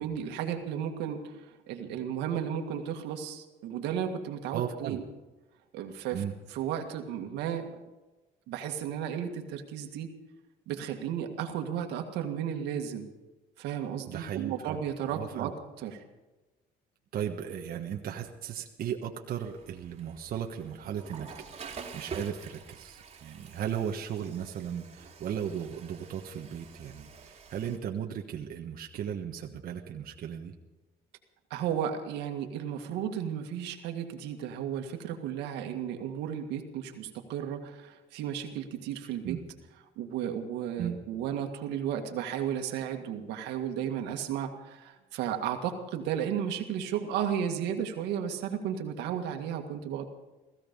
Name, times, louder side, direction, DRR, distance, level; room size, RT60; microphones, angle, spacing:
voice 1, 0.0-5.0 5.7-6.2 6.5-7.7 8.5-10.1 10.7-13.1 13.6-15.5 15.8-16.0 31.5-39.4 40.0-50.1, right 9 dB, 90° right, 5 dB, 1.9 m, -34 dB
voice 2, 4.5-5.0 6.1-6.3 14.1-14.8 15.1-15.5 17.1-21.3 21.6-30.5 39.2-39.4 40.8-41.0, right 9 dB, 60° right, 2 dB, 1.4 m, -36 dB
Water / Toilet flush, 19.4-27.8, right 5 dB, 40° right, 2.6 m, -47 dB
17.0 x 15.5 x 5.3 m, 1.1 s
cardioid pair, 110°, 17 cm